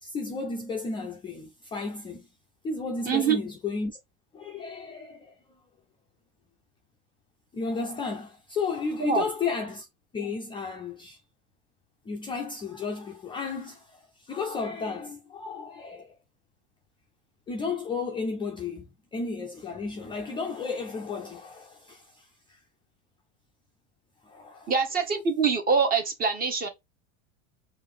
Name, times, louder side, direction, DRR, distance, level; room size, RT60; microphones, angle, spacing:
voice 1, 0.0-2.3 2.6-4.0 4.3-5.3 7.5-9.9 10.1-11.2 12.1-16.1 17.5-22.6 24.2-24.7, left 4 dB, 15° left, 0.4 m, -33 dB
voice 2, 3.1-3.4 9.0-9.2 24.7-26.7, right 5 dB, 25° right, 1.0 m, -24 dB
4.5 x 2.6 x 3.7 m
supercardioid pair, 145°, 34 cm